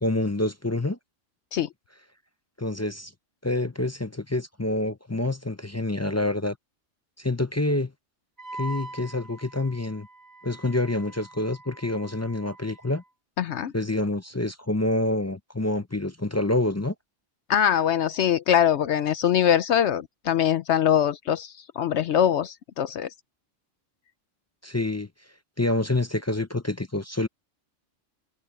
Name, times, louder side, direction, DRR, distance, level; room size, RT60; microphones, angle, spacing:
voice 1, 0.0-1.0 2.6-3.1 3.4-6.6 7.2-7.9 8.6-10.1 10.4-13.0 13.7-16.9 24.6-25.1 25.6-27.3, left 2 dB, 25° left, 0.4 m, -27 dB
Wind instrument woodwind instrument, 8.4-13.0, right 2 dB, 15° right, 2.6 m, -43 dB
voice 2, 13.4-13.7 17.5-23.1, left 9 dB, 65° left, 0.9 m, -23 dB
omnidirectional pair, 1.3 m